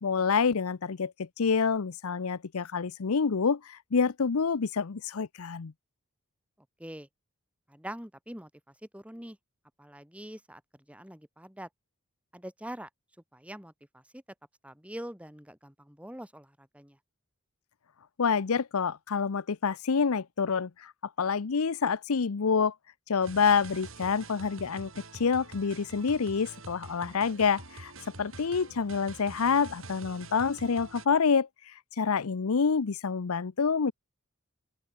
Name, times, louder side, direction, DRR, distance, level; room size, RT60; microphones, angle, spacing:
voice 1, 0.0-5.7 18.2-20.9 21.2-22.7 23.1-24.9 25.2-27.9 28.2-31.5 32.0-33.9, left 5 dB, 80° left, 0.6 m, -27 dB
voice 2, 7.7-9.4 9.8-11.7 12.3-12.9 13.3-14.2 14.6-17.0 23.2-23.4, right 1 dB, 5° right, 3.5 m, -44 dB
sound 1, 23.2-31.1, right 3 dB, 65° right, 6.7 m, -47 dB
open air
head